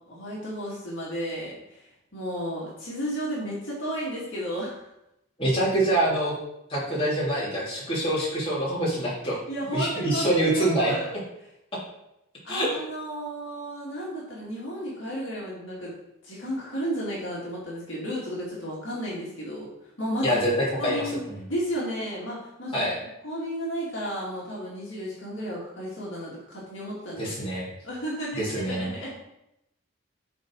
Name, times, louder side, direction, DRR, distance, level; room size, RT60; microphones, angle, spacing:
voice 1, 0.0-4.9 9.5-11.2 12.4-16.0 16.2-20.4 20.7-22.9 23.2-27.5 27.8-29.1, equal, 60° left, -6 dB, 2.4 m, -33 dB
voice 2, 5.4-6.3 6.7-9.3 9.7-10.9 12.5-12.7 20.2-20.5 20.8-21.0 22.7-22.9 27.2-27.6 28.3-28.9, right 1 dB, 25° left, -7 dB, 3.0 m, -25 dB
10.0 x 4.2 x 4.8 m, 0.85 s
head